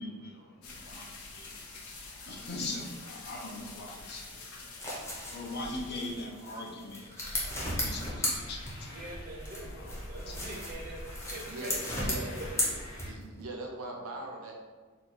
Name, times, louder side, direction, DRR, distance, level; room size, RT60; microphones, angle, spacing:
voice 1, 0.0-5.0 5.3-9.1 9.5-10.4 10.6-10.8, left 2 dB, 50° left, 0 dB, 0.5 m, -42 dB
sound 1, 0.6-6.3, left 3 dB, 90° left, 0.6 m, -47 dB
sound 2, 4.5-9.1 9.4-13.4, left 1 dB, 15° left, 0.7 m, -36 dB
sound 3, 7.2-13.1, left 1 dB, 75° left, 1.3 m, -45 dB
voice 2, 8.9-12.0 12.4-12.8, right 2 dB, 40° right, -3 dB, 0.6 m, -44 dB
voice 3, 11.5-12.3 13.1-14.5, right 2 dB, 80° right, 0 dB, 0.6 m, -40 dB
2.8 x 2.3 x 4.0 m, 1.4 s
head